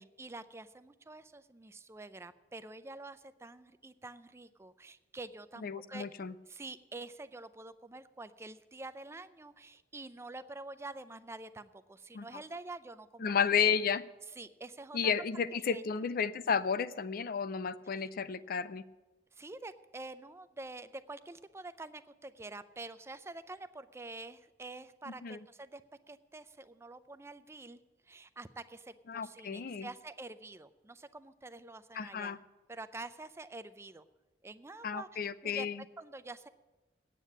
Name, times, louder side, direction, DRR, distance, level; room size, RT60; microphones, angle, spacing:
voice 1, 0.0-6.1 6.5-13.7 14.4-15.1 15.5-15.8 18.0-18.1 19.3-25.8 26.1-27.8 28.1-32.4 32.7-34.0 34.4-35.7 36.0-36.5, right 2 dB, 15° right, 12 dB, 0.4 m, -47 dB
voice 2, 5.6-6.3 12.1-12.3 13.2-14.0 14.9-18.8 25.2-25.4 29.1-29.9 31.9-32.4 34.8-35.8, left 6 dB, 55° left, 15 dB, 0.5 m, -32 dB
9.1 x 8.3 x 8.4 m, 1.1 s
head